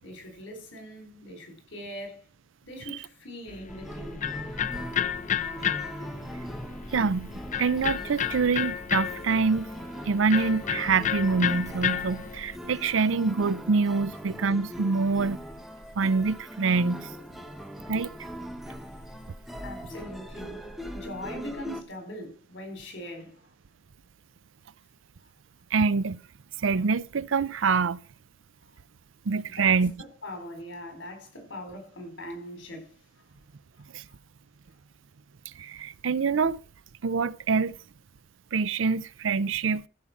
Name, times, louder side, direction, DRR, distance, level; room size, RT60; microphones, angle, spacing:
voice 1, 0.0-2.2 2.6-4.2 19.6-20.6 20.9-23.5 29.5-32.9, left 1 dB, 65° left, 4.4 m, -41 dB
Electric guitar, 3.5-12.6, left 9 dB, 40° left, 0.5 m, -32 dB
sound 1, 3.7-21.8, equal, ahead, 1.0 m, -40 dB
voice 2, 6.9-7.3 7.6-9.7 10.0-15.4 16.0-17.1 17.9-18.1 25.7-26.2 26.6-28.0 29.3-29.9 33.9-34.0 35.6-36.6 37.0-37.8 38.5-39.8, right 4 dB, 75° right, 0.5 m, -25 dB
15.0 x 5.6 x 6.0 m
head